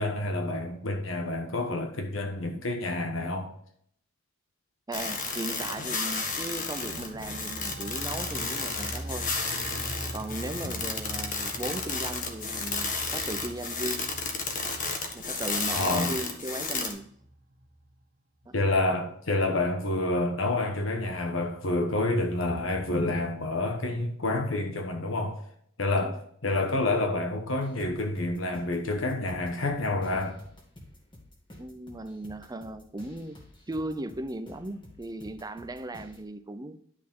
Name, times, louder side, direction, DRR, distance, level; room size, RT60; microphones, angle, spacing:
voice 1, 0.0-3.5 10.6-10.8 15.7-16.2 18.5-25.4 25.8-30.4, left 2 dB, 70° left, 1.2 m, -28 dB
sound 1, 4.9-16.9, left 4 dB, 40° left, 1.5 m, -32 dB
voice 2, 4.9-9.3 10.1-14.1 15.1-17.1 18.5-18.6 26.0-26.2 31.6-36.8, right 1 dB, 20° right, 0.6 m, -37 dB
sound 2, 6.6-17.9, right 1 dB, 40° right, 1.1 m, -43 dB
sound 3, 27.6-36.2, left 1 dB, 25° left, 2.1 m, -51 dB
10.5 x 6.4 x 3.7 m
head